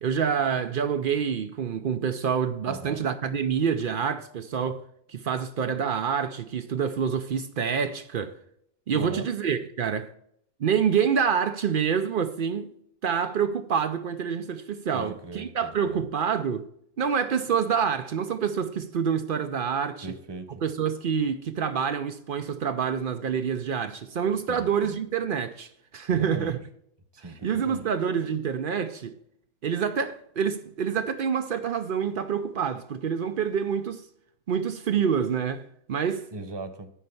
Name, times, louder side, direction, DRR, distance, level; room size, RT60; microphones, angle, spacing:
voice 1, 0.0-4.8 5.1-8.3 8.9-10.1 10.6-12.7 13.0-16.7 17.0-20.1 20.6-26.6 27.4-29.1 29.6-34.0 34.5-36.3, right 7 dB, 90° right, 0.4 m, -27 dB
voice 2, 2.7-3.0 8.9-9.3 14.9-16.0 20.0-20.6 24.5-25.0 26.1-26.6 27.1-27.9 36.3-36.9, right 2 dB, 20° right, 0.7 m, -39 dB
10.0 x 4.4 x 6.8 m
omnidirectional pair, 1.7 m